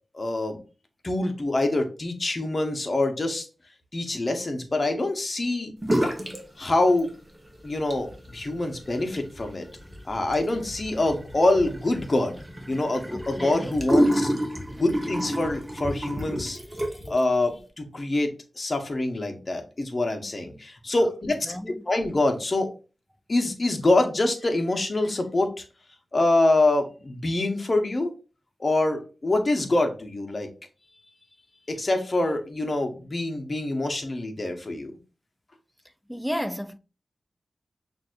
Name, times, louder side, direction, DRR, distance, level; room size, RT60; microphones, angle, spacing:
voice 1, 0.1-0.6 1.0-3.4 3.9-5.7 6.6-7.1 7.6-9.7 10.1-12.4 12.7-14.3 14.8-16.6 17.1-18.3 18.6-21.5 21.9-22.7 23.3-25.6 26.1-28.1 28.6-30.5 31.7-34.9, left 2 dB, 45° left, 0.9 m, -25 dB
sound 1, 5.8-6.4 6.7-7.4 7.7-17.2, equal, 20° right, 1.1 m, -29 dB
voice 2, 13.1-13.7 14.7-14.8 21.3-21.9 36.1-36.8, equal, 5° left, 0.3 m, -33 dB
6.0 x 2.6 x 2.5 m
cardioid pair, 50°, 0 cm